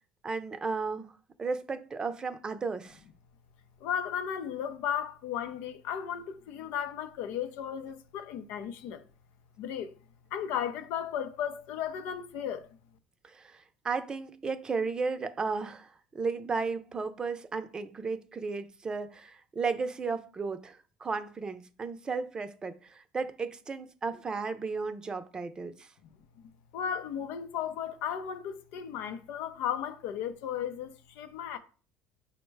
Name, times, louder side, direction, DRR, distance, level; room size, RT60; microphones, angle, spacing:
voice 1, 0.2-1.1 1.4-3.0 13.2-25.9, right 4 dB, 25° right, 0.6 m, -34 dB
voice 2, 3.8-9.1 9.6-10.0 10.3-12.7 26.7-31.6, left 9 dB, 75° left, 0.5 m, -35 dB
5.2 x 2.1 x 4.6 m
supercardioid pair, 90°, 3 cm